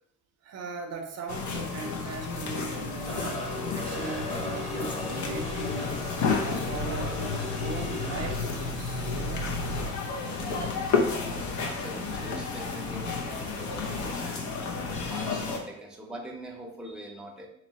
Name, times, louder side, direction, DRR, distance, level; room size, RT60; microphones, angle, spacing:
voice 1, 0.4-5.9 6.4-9.2, right 4 dB, 55° right, 3 dB, 0.6 m, -39 dB
sound 1, 1.3-15.6, left 4 dB, 70° left, 0.8 m, -31 dB
sound 2, 3.1-8.4, left 2 dB, 20° left, 1.1 m, -37 dB
sound 3, 3.8-14.0, left 1 dB, 50° left, 1.4 m, -48 dB
voice 2, 11.0-17.5, right 1 dB, 5° right, 0 dB, 0.7 m, -44 dB
3.0 x 2.9 x 4.1 m, 0.74 s
cardioid pair, 90°, 30 cm